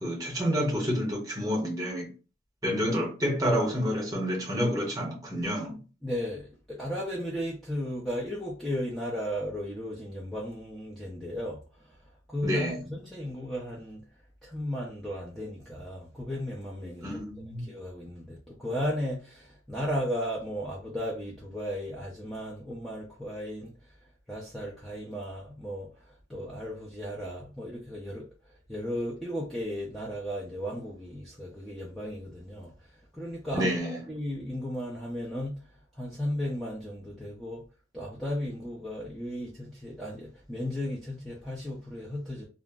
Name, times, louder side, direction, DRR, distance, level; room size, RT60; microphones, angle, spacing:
voice 1, 0.0-2.1 2.6-5.8 12.4-12.8 17.0-17.7 33.5-34.0, equal, 20° right, 0.9 m, -29 dB
voice 2, 6.0-12.0 12.3-14.0 14.4-17.2 17.6-23.7 24.3-28.3 28.7-32.7 33.1-35.6 35.9-37.6 37.9-42.4, equal, ahead, 0.5 m, -35 dB
2.4 x 2.1 x 3.5 m
head